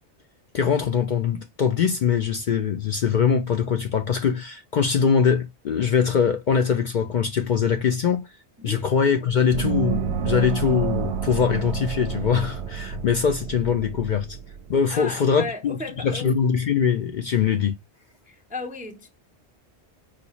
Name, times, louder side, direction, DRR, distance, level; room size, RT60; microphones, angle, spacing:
voice 1, 0.5-8.3 8.6-14.3 14.7-17.7, left 7 dB, 55° left, 0.5 m, -22 dB
Gong, 9.5-14.8, right 8 dB, 70° right, 0.8 m, -29 dB
voice 2, 14.9-16.4 18.3-19.1, left 3 dB, 10° right, 0.4 m, -35 dB
4.2 x 2.3 x 2.8 m
omnidirectional pair, 1.2 m